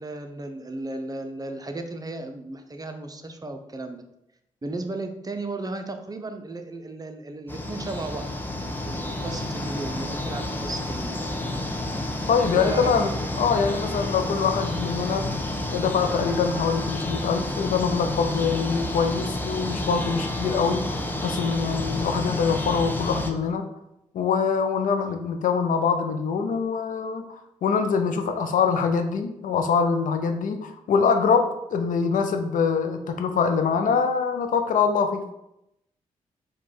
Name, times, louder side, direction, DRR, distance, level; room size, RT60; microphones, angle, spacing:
voice 1, 0.0-4.0 4.6-11.2 11.5-11.7 12.6-13.1 15.4-15.5, right 2 dB, 25° right, 6 dB, 0.6 m, -35 dB
sound 1, 7.5-23.3, left 1 dB, 15° left, 0.7 m, -30 dB
voice 2, 12.3-15.2 15.7-23.7 24.1-35.3, left 5 dB, 70° left, 7 dB, 0.5 m, -24 dB
4.6 x 2.3 x 4.3 m, 0.84 s
supercardioid pair, 45°, 14 cm